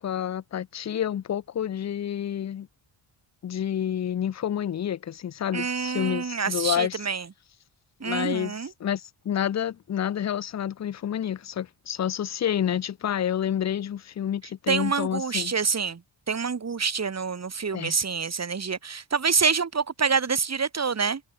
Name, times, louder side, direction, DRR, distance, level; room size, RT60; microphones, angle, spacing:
voice 1, 0.0-2.7 3.4-7.0 8.0-15.5 17.7-18.0, left 10 dB, 35° left, 0.5 m, -29 dB
voice 2, 5.5-7.3 8.0-8.7 14.7-16.0 16.3-21.2, right 5 dB, 35° right, 1.9 m, -27 dB
wide cardioid pair, 110°, 48 cm